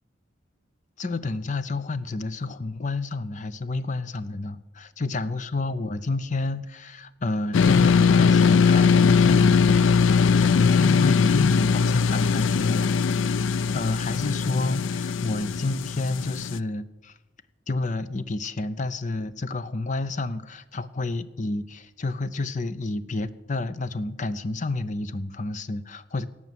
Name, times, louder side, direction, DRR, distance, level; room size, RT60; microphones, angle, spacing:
voice 1, 1.0-17.2 17.7-26.3, left 2 dB, 40° left, 14 dB, 0.7 m, -30 dB
sound 1, 7.5-16.6, left 5 dB, 80° left, 0.4 m, -20 dB
17.5 x 6.2 x 9.4 m, 1.0 s
head